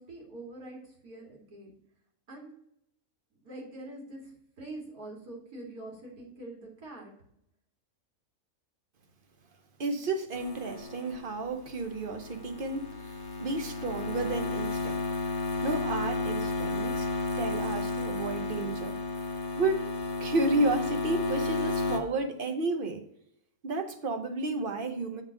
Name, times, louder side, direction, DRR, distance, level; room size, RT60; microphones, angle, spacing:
voice 1, 0.0-1.7 2.3-2.5 3.4-7.1 11.0-11.1, right 2 dB, 90° right, -2 dB, 2.8 m, -45 dB
voice 2, 9.8-15.0 15.6-17.1 17.4-19.0 19.6-19.9 20.2-23.0 23.6-25.2, right 2 dB, 45° right, 6 dB, 0.9 m, -32 dB
sound 1, 10.3-22.0, left 3 dB, 30° left, 1.0 m, -33 dB
7.4 x 3.5 x 6.3 m, 0.75 s
omnidirectional pair, 1.6 m